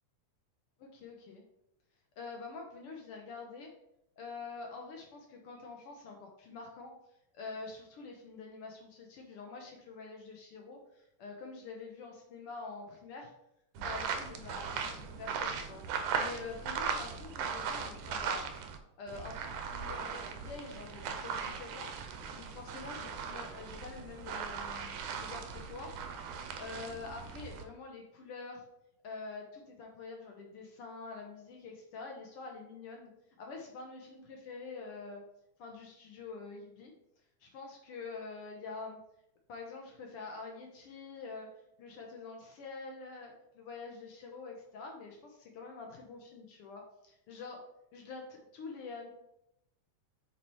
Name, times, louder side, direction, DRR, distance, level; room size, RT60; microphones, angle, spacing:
voice 1, 0.9-1.4 2.2-3.7 4.2-6.9 7.3-13.3 13.8-15.8 16.2-18.6 19.0-21.9 22.3-25.9 26.6-28.6 29.0-33.1 33.4-35.2 35.6-36.9 37.4-39.0 39.5-41.5 41.8-47.6 47.9-49.1, left 4 dB, 70° left, 1 dB, 1.4 m, -46 dB
sound 1, 13.7-18.8 19.1-27.6, right 6 dB, 90° right, 2.2 m, -38 dB
7.5 x 4.2 x 3.1 m, 0.82 s
omnidirectional pair, 3.5 m